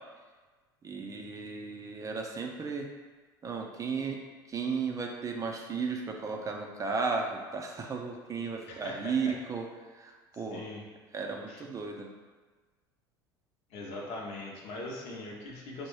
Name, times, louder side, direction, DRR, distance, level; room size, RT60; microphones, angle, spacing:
voice 1, 0.8-2.9 3.4-4.2 4.5-10.6 11.1-12.1, right 5 dB, 25° right, 2 dB, 0.5 m, -34 dB
voice 2, 8.7-9.3 10.5-10.8 11.5-11.6 13.7-15.9, left 2 dB, 60° left, -1 dB, 0.9 m, -41 dB
4.7 x 2.2 x 3.1 m, 1.4 s
hypercardioid pair, 70°, 12 cm